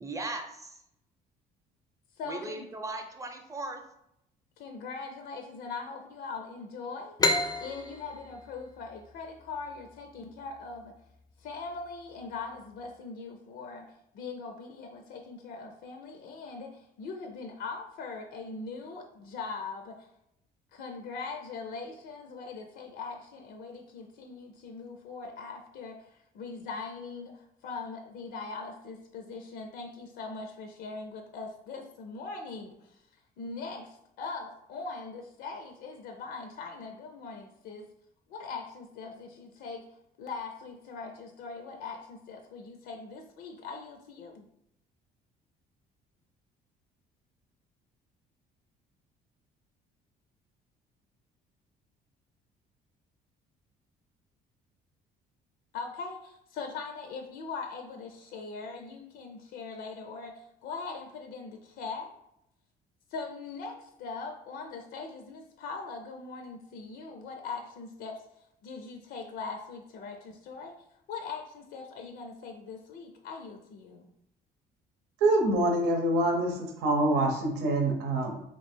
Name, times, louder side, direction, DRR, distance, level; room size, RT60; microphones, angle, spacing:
voice 1, 0.0-0.8 2.2-3.8, right 2 dB, 20° right, 4 dB, 0.6 m, -38 dB
voice 2, 2.2-2.7 4.6-7.2 7.6-10.9 11.4-20.1 20.7-37.9 38.3-39.9 40.2-44.5 55.7-62.1 63.1-70.7 71.1-74.1, left 4 dB, 85° left, 4 dB, 0.5 m, -41 dB
sound 1, 7.2-10.6, left 2 dB, 25° left, 0.4 m, -31 dB
voice 3, 75.2-78.4, right 1 dB, 85° right, 2 dB, 0.8 m, -25 dB
3.0 x 2.5 x 4.3 m, 0.79 s
cardioid pair, 110°, 17 cm